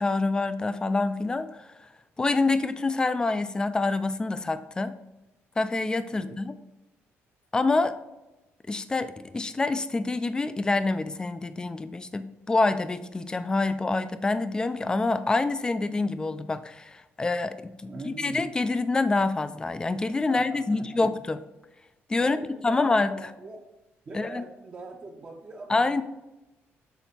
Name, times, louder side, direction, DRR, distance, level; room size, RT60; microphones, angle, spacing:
voice 1, 0.0-1.9 2.2-5.0 5.6-6.5 7.5-8.0 8.7-21.4 22.1-22.4 22.6-23.3 24.1-24.4 25.7-26.0, left 3 dB, 15° left, 12 dB, 0.4 m, -26 dB
voice 2, 17.9-18.5 20.3-21.1 22.2-23.6 24.1-26.0, right 3 dB, 30° right, 0 dB, 0.7 m, -42 dB
7.0 x 4.1 x 4.2 m, 0.98 s
cardioid pair, 135°, 5 cm